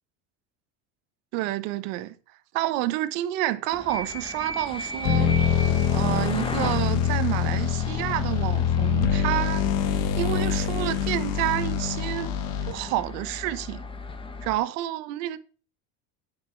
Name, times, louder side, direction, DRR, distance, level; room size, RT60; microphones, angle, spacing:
voice 1, 1.3-2.2 2.5-5.3 5.9-12.3 12.7-13.8 14.4-15.4, right 15 dB, 80° right, 1.2 m, -29 dB
sound 1, 3.7-14.6, left 2 dB, 15° left, 1.0 m, -37 dB
sound 2, 5.0-13.0, left 8 dB, 65° left, 1.2 m, -25 dB
9.8 x 6.1 x 4.5 m
cardioid pair, 140°, 39 cm